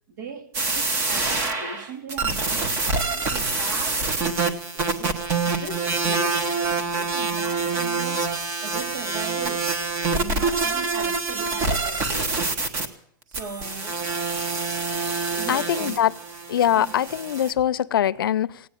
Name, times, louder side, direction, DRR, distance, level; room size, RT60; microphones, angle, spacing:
voice 1, 0.1-8.3 8.6-9.7 10.2-12.5 13.3-14.0 15.3-16.0 16.7-17.0, right 5 dB, 60° right, 2.6 m, -39 dB
sound 1, 0.5-12.9 13.3-17.5, right 3 dB, 20° right, 1.3 m, -26 dB
voice 2, 15.5-16.1 16.5-18.6, left 10 dB, 85° left, 0.7 m, -22 dB
17.0 x 9.2 x 9.2 m
supercardioid pair, 165°, 11 cm